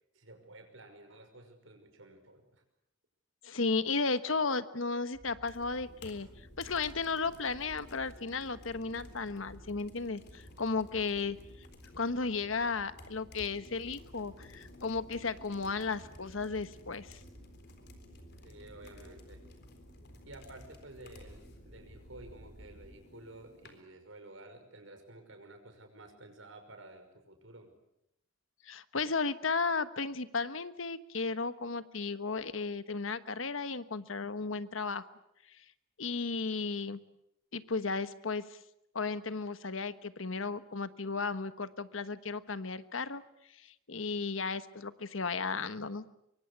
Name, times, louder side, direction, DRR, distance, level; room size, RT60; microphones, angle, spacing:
voice 1, 0.1-2.6 18.4-19.4 20.3-27.7, right 2 dB, 80° right, 6 dB, 5.7 m, -52 dB
voice 2, 3.4-6.3 6.6-11.4 11.9-17.2 28.6-35.1 36.0-37.0 37.5-38.4 38.9-43.2 43.6-46.0, left 4 dB, 80° left, 12 dB, 1.3 m, -34 dB
sound 1, 5.1-23.0, equal, 55° right, 3.4 m, -55 dB
sound 2, 5.5-23.8, left 2 dB, 55° left, 3.9 m, -56 dB
24.5 x 23.5 x 8.3 m, 0.81 s
head